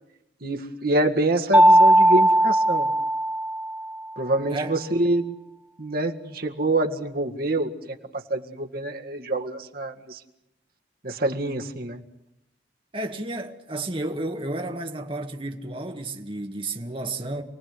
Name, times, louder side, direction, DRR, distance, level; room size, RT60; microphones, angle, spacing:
voice 1, 0.4-2.9 4.2-5.3 5.8-10.2 11.0-12.0, right 2 dB, 55° right, 2.0 m, -26 dB
Mallet percussion, 1.5-4.0, right 1 dB, 10° right, 0.9 m, -18 dB
voice 2, 12.9-17.4, right 2 dB, 30° right, 1.8 m, -32 dB
28.5 x 19.0 x 9.6 m
head